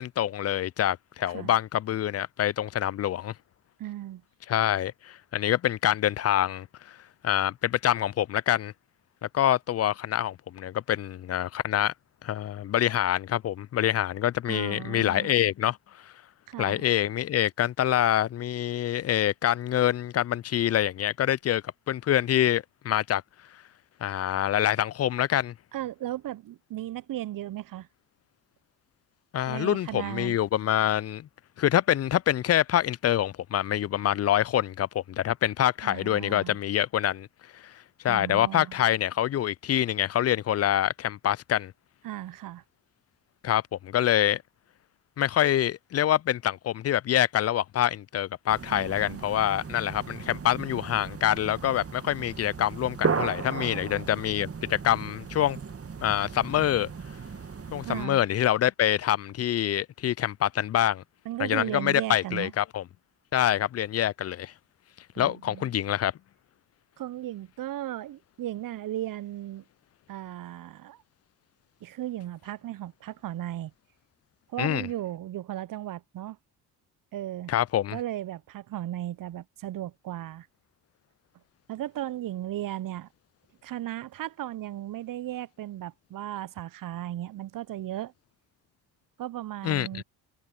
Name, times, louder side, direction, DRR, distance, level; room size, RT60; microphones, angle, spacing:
voice 1, 0.0-3.3 4.5-7.0 7.2-8.7 9.3-11.9 12.2-15.8 16.6-23.2 24.0-25.5 29.3-31.3 31.6-37.3 37.5-37.7 38.0-41.7 43.4-44.4 45.2-55.6 56.0-56.9 57.7-61.0 61.4-62.8 63.3-64.5 65.2-66.1 74.6-74.9 77.5-78.0 89.6-90.0, left 11 dB, 35° left, 0.4 m, -26 dB
voice 2, 3.8-4.2 14.5-15.3 16.5-16.9 25.7-27.9 29.5-30.4 35.8-36.6 38.1-38.8 42.0-42.6 48.7-49.2 53.7-53.8 57.8-58.2 61.3-62.5 65.2-65.7 67.0-69.6 70.1-71.0 71.8-73.7 74.5-76.4 77.1-77.5 77.9-80.5 81.7-83.1 83.6-88.1 89.2-90.0, right 13 dB, 45° right, 0.7 m, -36 dB
sound 1, 48.5-58.1, right 5 dB, 30° right, 1.9 m, -36 dB
hypercardioid pair, 55°, 45 cm